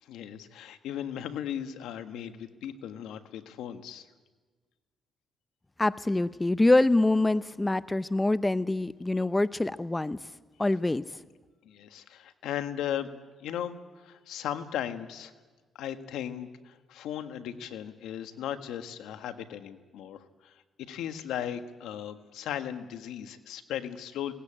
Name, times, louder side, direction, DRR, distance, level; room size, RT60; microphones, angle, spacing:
voice 1, 0.0-4.1 9.1-9.2 11.6-13.1 13.4-15.3 15.7-24.3, left 10 dB, 85° left, 8 dB, 1.5 m, -37 dB
voice 2, 5.8-10.2 10.6-11.0, left 2 dB, 15° left, 15 dB, 0.6 m, -25 dB
20.5 x 19.0 x 8.8 m, 1.4 s
cardioid pair, 90°, 0 cm